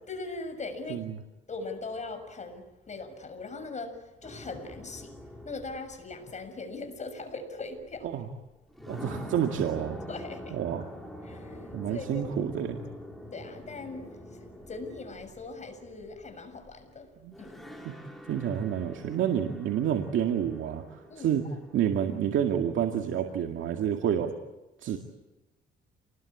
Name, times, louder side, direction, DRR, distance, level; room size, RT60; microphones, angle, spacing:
voice 1, 0.1-1.0 1.5-5.1 5.4-8.1 10.1-10.6 11.2-12.3 13.3-14.0 14.7-17.1 17.4-17.7 21.1-21.3, left 3 dB, 35° left, 7 dB, 6.8 m, -40 dB
sound 1, 4.2-7.0 8.0-8.1 8.7-16.8 17.3-23.7, equal, ahead, 6.1 m, -45 dB
voice 2, 8.9-10.0 10.5-10.9 11.7-12.8 17.2-17.4 17.8-18.0 18.3-21.4 21.7-24.3 24.8-25.0, right 9 dB, 80° right, 4 dB, 2.2 m, -29 dB
28.5 x 20.5 x 8.7 m, 1.0 s
cardioid pair, 90°, 20 cm